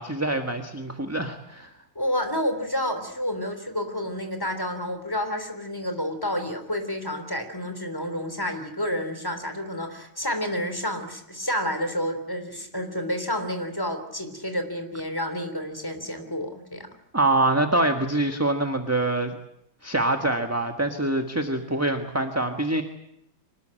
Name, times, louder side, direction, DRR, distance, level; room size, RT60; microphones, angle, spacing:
voice 1, 0.0-1.7 17.1-19.4 19.8-22.8, right 2 dB, 10° right, 5 dB, 1.3 m, -25 dB
voice 2, 2.0-16.9, equal, 10° left, 7 dB, 3.5 m, -29 dB
25.0 x 20.0 x 9.0 m, 0.79 s
omnidirectional pair, 2.3 m